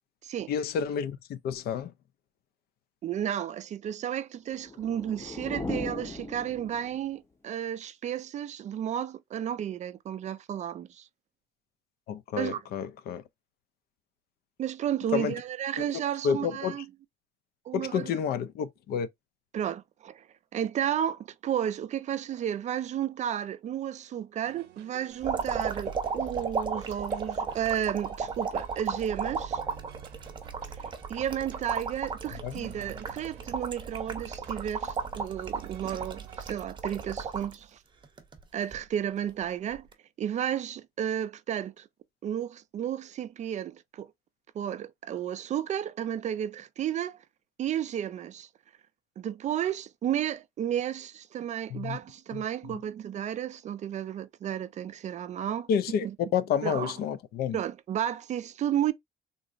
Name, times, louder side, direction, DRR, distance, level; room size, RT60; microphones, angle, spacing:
voice 1, 0.5-1.9 12.1-13.2 15.1-15.3 15.8-15.9 16.2-16.8 17.7-19.1 32.4-32.7 51.7-52.0 52.3-52.4 55.7-56.1 56.3-57.6, left 7 dB, 65° left, 0.5 m, -30 dB
voice 2, 3.0-11.1 12.3-12.6 14.6-16.9 17.7-18.1 19.5-20.3 20.5-29.6 30.7-37.8 38.5-39.9 40.2-41.9 42.2-44.1 44.5-47.2 47.6-48.5 49.2-55.7 56.0-56.2 56.6-56.9 57.5-58.9, right 10 dB, 45° right, 0.4 m, -32 dB
sound 1, 4.5-7.2, left 2 dB, 15° left, 0.5 m, -38 dB
sound 2, 24.4-36.5, right 9 dB, 90° right, 0.6 m, -50 dB
sound 3, 25.2-37.6 38.0-38.8 39.8-39.9, right 5 dB, 30° right, 0.8 m, -34 dB
3.8 x 2.0 x 2.5 m
cardioid pair, 110°, 17 cm